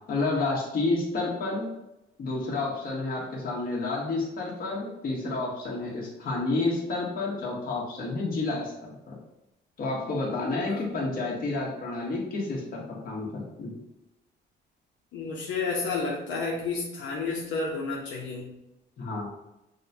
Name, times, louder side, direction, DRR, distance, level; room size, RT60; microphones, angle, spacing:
voice 1, 0.1-1.7 2.2-8.7 9.1-9.2 9.8-13.7 19.0-19.3, left 3 dB, 50° left, -3 dB, 1.4 m, -30 dB
voice 2, 15.1-18.5, left 4 dB, 85° left, -3 dB, 0.7 m, -31 dB
6.4 x 2.2 x 2.7 m, 0.93 s
cardioid pair, 125°, 19 cm